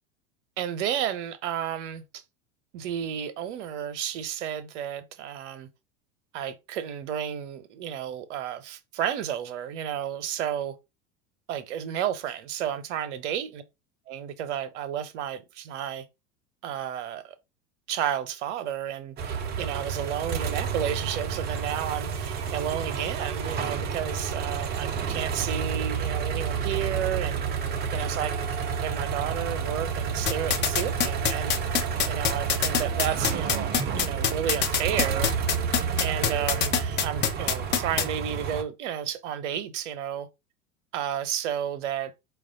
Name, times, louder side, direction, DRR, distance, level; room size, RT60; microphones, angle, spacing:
voice 1, 0.6-2.2 2.7-5.7 6.3-10.8 11.5-13.6 14.1-16.1 16.6-17.3 17.9-27.4 27.9-28.3 28.8-31.5 32.1-35.3 36.0-40.3 40.9-42.1, right 9 dB, 55° right, 0.8 m, -32 dB
sound 1, 19.2-38.6, right 6 dB, 25° right, 0.5 m, -30 dB
sound 2, 30.3-38.0, left 8 dB, 25° left, 0.7 m, -24 dB
4.6 x 2.3 x 3.7 m
figure-of-eight pair, 85°, 42 cm